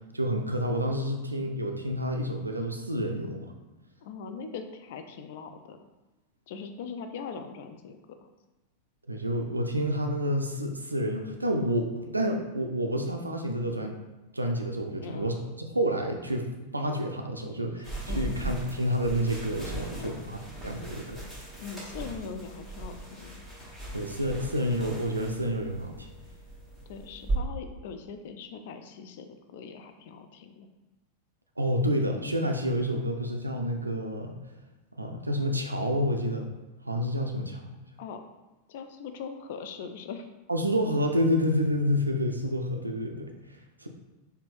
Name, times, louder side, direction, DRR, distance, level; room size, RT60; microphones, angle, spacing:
voice 1, 0.1-3.5 9.1-13.9 14.3-20.4 20.6-21.3 23.9-26.1 31.6-34.3 35.0-36.5 36.9-37.6 40.5-43.3 43.8-43.9, equal, 85° right, 4 dB, 0.3 m, -29 dB
voice 2, 4.0-5.8 6.5-8.3 15.0-15.4 18.1-18.5 20.0-20.3 21.6-23.4 26.9-30.7 38.0-38.2 38.7-40.3, left 5 dB, 55° left, 7 dB, 0.4 m, -41 dB
sound 1, 17.8-27.4, right 2 dB, 5° left, 1.4 m, -38 dB
4.2 x 2.7 x 3.1 m, 1.0 s
figure-of-eight pair, 90°, 0 cm